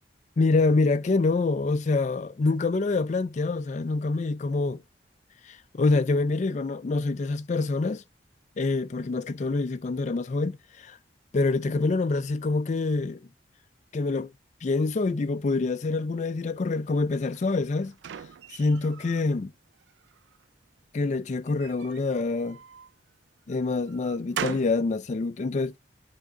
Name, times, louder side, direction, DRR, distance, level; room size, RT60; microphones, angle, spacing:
voice 1, 0.4-4.8 5.5-8.0 8.6-11.0 11.3-13.2 13.9-14.3 14.6-17.9 18.5-19.5 20.9-22.6 23.5-25.7, left 3 dB, 40° left, 0.4 m, -26 dB
sound 1, 17.3-19.3 19.7-20.5 21.5-22.9 23.5-24.8, right 8 dB, 85° right, 0.4 m, -40 dB
10.5 x 3.6 x 2.9 m
head